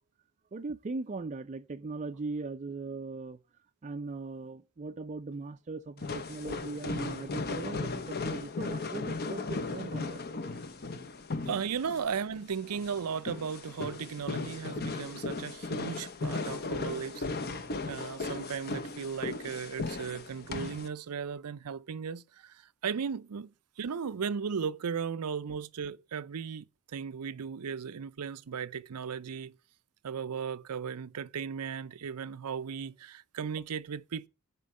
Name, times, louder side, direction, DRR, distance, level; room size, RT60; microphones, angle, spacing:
voice 1, 0.5-3.4 3.8-10.2, right 3 dB, 35° right, 0.4 m, -39 dB
sound 1, 6.0-20.9, left 3 dB, 45° left, 0.9 m, -36 dB
voice 2, 11.5-17.2 17.9-23.5 23.8-26.6 26.9-29.5 30.0-34.3, right 6 dB, 85° right, 0.5 m, -36 dB
10.5 x 4.5 x 7.4 m
head